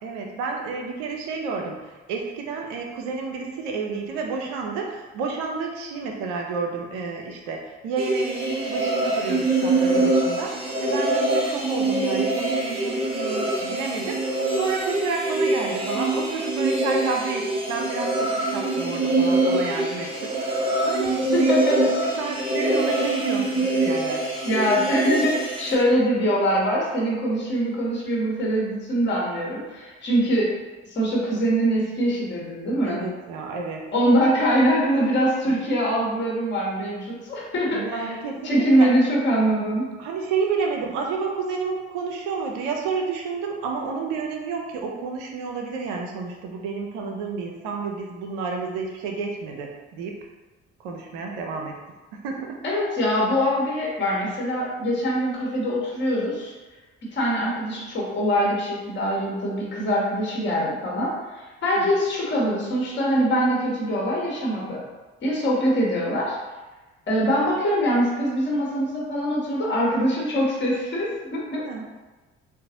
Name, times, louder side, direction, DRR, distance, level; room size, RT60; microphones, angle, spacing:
voice 1, 0.0-20.6 20.8-21.6 22.0-24.3 32.8-33.9 35.5-35.6 37.7-38.9 40.0-50.2 50.8-51.8 52.1-52.6 61.8-61.9 71.6-72.0, right 4 dB, 60° right, 1 dB, 0.5 m, -30 dB
sound 1, 8.0-25.8, right 2 dB, 15° right, 0.7 m, -24 dB
voice 2, 21.3-21.8 24.4-30.5 30.9-33.0 33.9-38.1 38.4-39.9 52.6-56.5 57.1-64.8 65.2-66.4 67.1-71.6, equal, 35° left, -4 dB, 1.0 m, -23 dB
3.8 x 2.0 x 2.8 m, 1.2 s
figure-of-eight pair, 45°, 34 cm